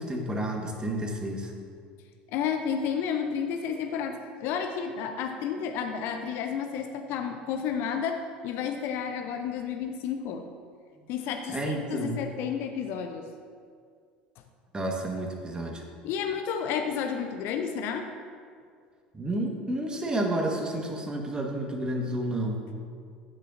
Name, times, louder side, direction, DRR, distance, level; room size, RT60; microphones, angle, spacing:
voice 1, 0.0-1.5 11.5-12.2 14.7-15.8 19.1-22.6, right 1 dB, 20° right, 1 dB, 1.4 m, -30 dB
voice 2, 2.3-10.5 11.1-13.3 16.0-18.1, left 7 dB, 55° left, 6 dB, 0.6 m, -31 dB
9.7 x 8.3 x 2.6 m, 2.1 s
figure-of-eight pair, 65°, 5 cm